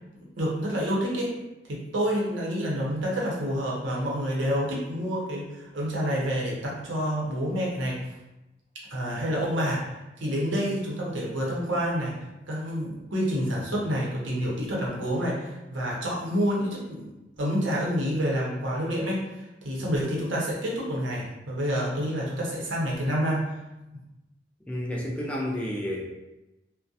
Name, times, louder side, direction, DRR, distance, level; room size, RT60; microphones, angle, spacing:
voice 1, 0.4-1.3 1.7-8.0 8.9-9.8 10.2-12.1 12.5-17.1 17.4-23.5, equal, 90° right, -4 dB, 0.7 m, -28 dB
voice 2, 24.7-26.0, left 1 dB, 5° left, -3 dB, 0.3 m, -30 dB
2.4 x 2.1 x 2.7 m, 0.98 s
head